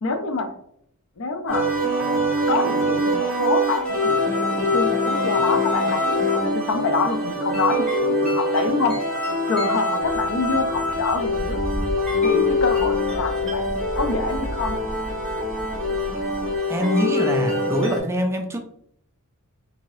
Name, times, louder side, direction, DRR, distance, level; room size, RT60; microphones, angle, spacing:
voice 1, 0.0-0.5 1.2-1.7 2.5-9.0 9.5-11.6 12.2-13.6 14.0-14.8, left 3 dB, 65° left, 7 dB, 0.5 m, -26 dB
sound 1, 1.5-18.0, left 1 dB, 5° left, 1.2 m, -23 dB
sound 2, 10.0-16.6, equal, 30° left, 1.0 m, -34 dB
voice 2, 16.4-18.6, equal, 10° right, 3 dB, 0.3 m, -24 dB
2.9 x 2.7 x 3.0 m, 0.68 s
head